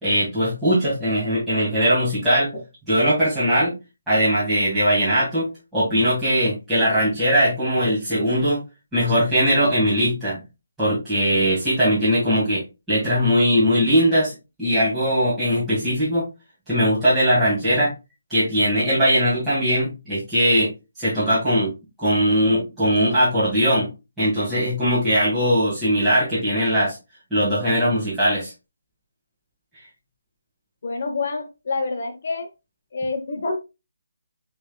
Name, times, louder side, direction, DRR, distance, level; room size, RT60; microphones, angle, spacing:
voice 1, 0.0-2.5 2.9-3.7 4.1-8.6 8.9-10.4 10.8-12.6 12.9-16.3 16.7-17.9 18.3-20.7 21.0-21.7 22.0-23.9 24.2-27.0 27.3-28.5, equal, 5° right, 2.3 m, -20 dB
voice 2, 30.8-32.5 32.9-33.6, left 3 dB, 50° left, 0.9 m, -27 dB
6.2 x 3.5 x 2.3 m
hypercardioid pair, 165°, 0 cm